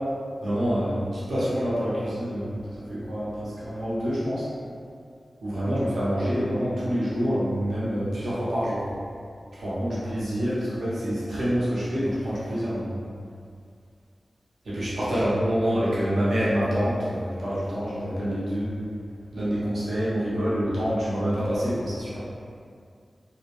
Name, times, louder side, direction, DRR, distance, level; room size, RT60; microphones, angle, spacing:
voice 1, 0.4-2.6 2.9-4.5 5.4-9.0 9.6-12.9 14.7-18.8 19.3-22.2, equal, 80° right, -9 dB, 0.6 m, -26 dB
2.3 x 2.1 x 2.8 m, 2.3 s
cardioid pair, 50°, 0 cm